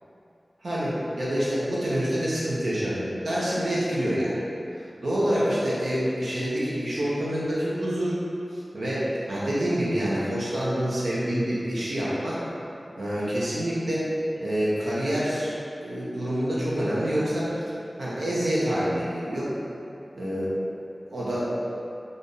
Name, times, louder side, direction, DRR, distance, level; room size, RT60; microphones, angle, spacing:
voice 1, 0.6-4.4 5.0-8.1 8.5-12.4 13.0-14.1 14.4-15.5 15.8-17.5 18.0-19.5 20.1-20.5 21.1-21.5, equal, 85° right, -8 dB, 0.9 m, -27 dB
3.4 x 2.7 x 4.0 m, 2.7 s
wide cardioid pair, 60°, 0 cm